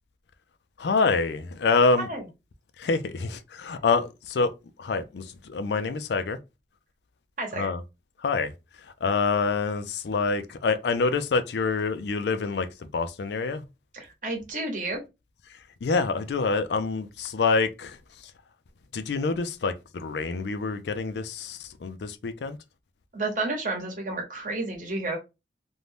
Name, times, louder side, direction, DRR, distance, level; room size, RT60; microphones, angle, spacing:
voice 1, 0.8-2.1 2.8-4.5 4.8-6.4 7.6-7.8 8.2-8.5 9.0-12.7 12.9-13.6 15.8-18.0 18.9-22.6, left 4 dB, 70° left, 0.4 m, -26 dB
voice 2, 7.4-7.7 13.9-15.0 23.1-25.2, right 2 dB, 45° right, 0.9 m, -31 dB
2.6 x 2.2 x 3.2 m
head